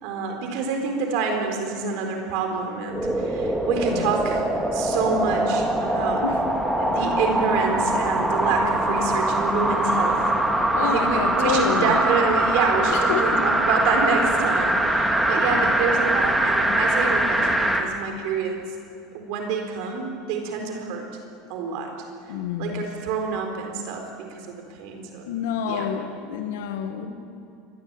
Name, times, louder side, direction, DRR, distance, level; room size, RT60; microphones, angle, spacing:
voice 1, 0.0-4.4 4.7-6.2 6.8-10.3 10.8-18.6 19.1-21.0 21.5-21.9 22.6-25.3 25.7-25.9 27.0-27.1, right 5 dB, 60° right, 3 dB, 4.2 m, -27 dB
sound 1, 2.9-17.9 18.3-18.4, right 1 dB, 5° right, 2.1 m, -23 dB
voice 2, 10.7-11.9 12.9-13.5 15.5-15.7 22.3-22.8 25.3-27.1, left 8 dB, 90° left, 6 dB, 1.9 m, -28 dB
24.0 x 19.5 x 9.0 m, 2.5 s
supercardioid pair, 150°, 0 cm